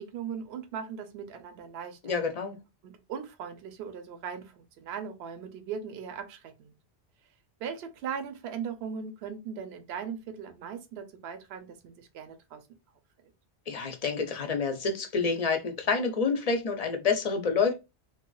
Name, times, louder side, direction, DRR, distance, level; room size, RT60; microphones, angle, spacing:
voice 1, 0.0-2.2 2.8-6.7 7.6-12.6, right 7 dB, 70° right, 0.8 m, -39 dB
voice 2, 2.0-2.6 13.7-17.7, left 5 dB, 45° left, 0.6 m, -28 dB
3.1 x 2.4 x 2.3 m
omnidirectional pair, 1.1 m